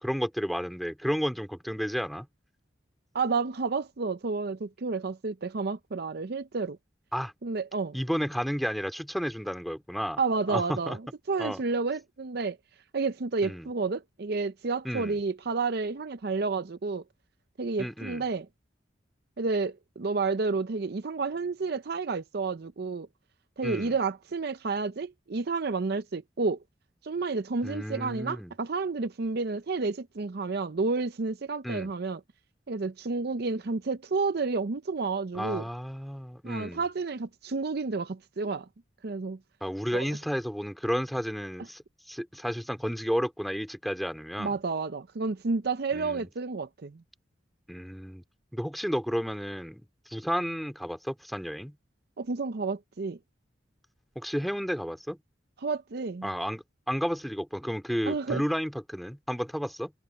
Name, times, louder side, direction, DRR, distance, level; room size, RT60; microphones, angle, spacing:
voice 1, 0.0-2.3 7.1-7.3 7.9-10.2 10.5-11.0 11.4-11.6 13.4-13.7 14.8-15.2 17.8-18.2 23.6-23.9 27.6-28.5 31.6-31.9 35.3-36.8 39.6-41.8 42.1-44.6 45.9-46.3 47.7-48.2 48.5-49.8 50.1-51.8 54.2-55.2 56.2-59.9, equal, ahead, 2.6 m, -32 dB
voice 2, 3.1-6.8 7.4-8.0 10.2-11.0 11.3-12.6 12.9-17.0 17.6-18.5 19.4-23.1 23.6-26.6 27.0-32.2 32.7-35.6 36.4-38.7 39.0-39.4 39.9-40.1 44.4-47.0 52.2-53.2 55.6-56.3 58.1-58.4, right 4 dB, 55° right, 0.6 m, -30 dB
head